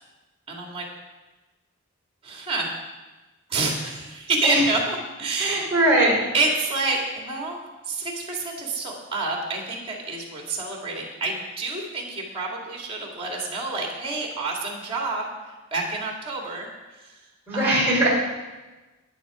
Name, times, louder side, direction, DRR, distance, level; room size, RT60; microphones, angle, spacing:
voice 1, 0.5-0.9 2.2-2.7 3.5-5.6 6.3-7.6 7.8-17.2 17.5-17.9, right 3 dB, 25° right, 0 dB, 2.4 m, -28 dB
voice 2, 5.4-6.2 17.5-18.1, right 1 dB, 10° right, -6 dB, 4.2 m, -20 dB
11.5 x 9.3 x 5.0 m, 1.2 s
head